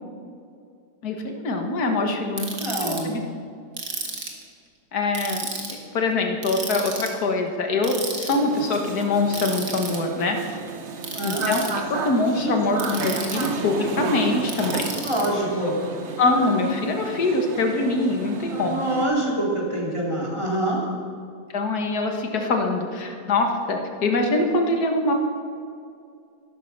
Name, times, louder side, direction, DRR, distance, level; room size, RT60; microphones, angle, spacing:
voice 1, 1.0-2.5 2.8-3.2 4.9-5.5 5.9-10.4 11.2-14.9 15.7-15.8 16.2-18.8 21.5-25.1, left 2 dB, 60° left, 3 dB, 2.0 m, -24 dB
Ratchet pawl, 2.4-3.0 3.8-4.4 5.1-5.7 6.4-7.1 7.8-8.3 9.3-10.0 11.0-11.7 12.8-13.6 14.5-15.3, right 4 dB, 65° right, 2.3 m, -32 dB
voice 2, 2.6-3.2 11.1-11.4 15.0-15.8 18.5-20.8, right 1 dB, 15° right, -4 dB, 3.3 m, -25 dB
sound 1, 8.3-19.0, right 4 dB, 45° right, 1.1 m, -32 dB
13.0 x 12.0 x 6.0 m, 2.3 s
omnidirectional pair, 1.9 m